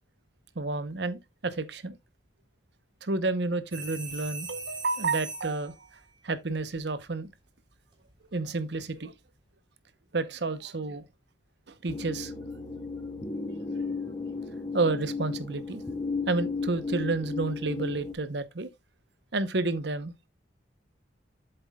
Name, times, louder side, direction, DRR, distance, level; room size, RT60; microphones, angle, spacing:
voice 1, 0.5-2.0 3.0-5.9 6.2-7.3 8.3-9.1 10.1-11.0 11.7-12.3 13.7-13.9 14.7-15.8 16.3-18.7 19.3-20.1, right 3 dB, 70° right, 0.9 m, -30 dB
sound 1, 3.7-5.7 8.1-8.3, right 3 dB, 30° right, 3.5 m, -39 dB
sound 2, 11.9-18.1, left 4 dB, 25° left, 0.8 m, -34 dB
7.8 x 7.7 x 2.3 m
head